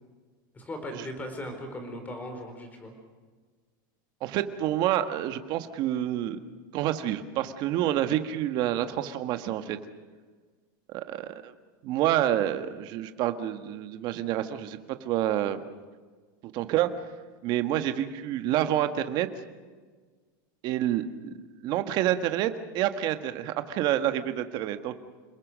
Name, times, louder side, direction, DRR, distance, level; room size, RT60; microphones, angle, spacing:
voice 1, 0.5-2.9, left 1 dB, 15° left, 5 dB, 4.7 m, -38 dB
voice 2, 4.2-6.4 6.7-9.8 10.9-11.5 11.8-14.8 15.0-15.6 16.5-16.9 17.4-19.3 20.6-21.3 21.6-24.9, right 12 dB, 40° right, 9 dB, 1.5 m, -28 dB
28.0 x 20.5 x 6.4 m, 1.5 s
supercardioid pair, 155°, 11 cm